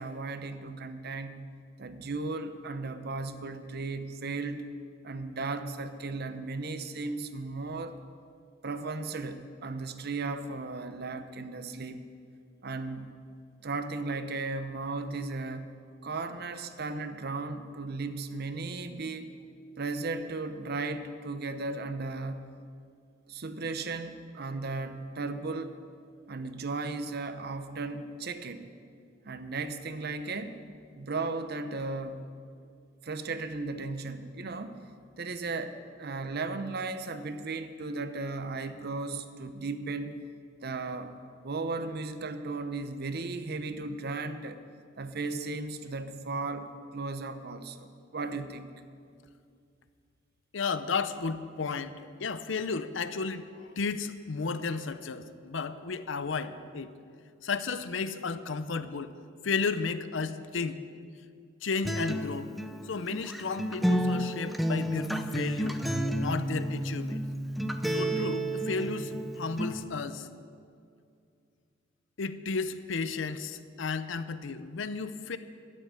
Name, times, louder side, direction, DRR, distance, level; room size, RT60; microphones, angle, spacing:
voice 1, 0.0-1.4 1.8-4.7 5.0-8.0 8.6-12.0 12.6-13.1 13.6-15.7 16.0-19.3 19.8-22.4 23.3-25.8 26.3-28.7 29.2-30.5 30.9-32.3 33.0-34.8 35.2-40.2 40.6-41.1 41.4-44.6 45.0-48.7, right 3 dB, 55° right, 10 dB, 0.8 m, -36 dB
voice 2, 50.5-53.4 53.8-56.9 57.4-59.1 59.4-60.8 61.6-62.5 62.8-65.8 66.2-67.2 67.9-70.3 72.2-75.4, left 4 dB, 65° left, 12 dB, 0.6 m, -33 dB
Acoustic guitar, 61.8-69.8, right 1 dB, ahead, 0.6 m, -31 dB
12.5 x 7.6 x 9.0 m, 2.3 s
head